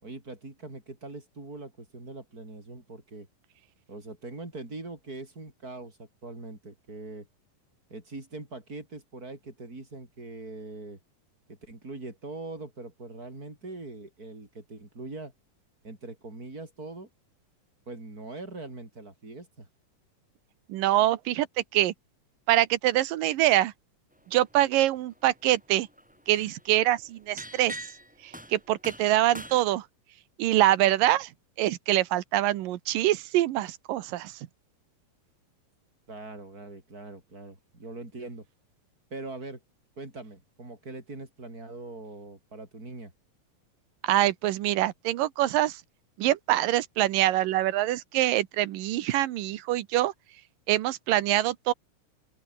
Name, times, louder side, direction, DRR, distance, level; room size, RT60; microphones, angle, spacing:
voice 1, 0.0-3.3 3.9-7.3 7.9-11.0 11.5-15.3 15.8-17.1 17.9-19.7 36.1-38.4 39.1-39.6 40.0-43.1, right 2 dB, 25° right, 6.5 m, -42 dB
voice 2, 20.7-21.5 21.7-21.9 22.5-23.7 24.3-25.9 26.3-27.8 28.2-29.8 30.4-31.3 31.6-34.3 44.0-45.8 46.2-50.1 50.7-51.7, right 14 dB, 85° right, 2.8 m, -24 dB
sound 1, 24.5-25.0 25.3-29.6, equal, ahead, 7.5 m, -44 dB
open air
omnidirectional pair, 3.8 m